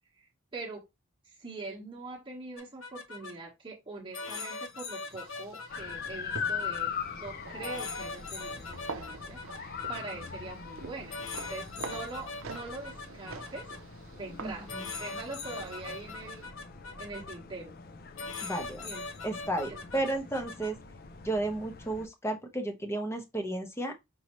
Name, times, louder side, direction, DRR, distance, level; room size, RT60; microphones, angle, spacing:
voice 1, 0.5-0.8 1.2-11.2 11.5-13.7 14.1-16.5 17.0-17.7 18.8-19.1 19.7-20.1, right 3 dB, 25° right, 1.1 m, -43 dB
sound 1, 2.6-3.3 4.1-6.8 7.6-10.3 11.1-13.8 14.7-17.4 18.2-20.7, left 4 dB, 75° left, 0.8 m, -41 dB
sound 2, 5.0-16.5, right 4 dB, 75° right, 0.6 m, -47 dB
sound 3, 5.7-22.1, left 6 dB, 45° left, 0.5 m, -42 dB
voice 2, 14.4-14.9 18.4-18.9 19.2-20.8 21.2-23.9, right 1 dB, 15° left, 0.9 m, -33 dB
5.4 x 2.8 x 3.0 m
head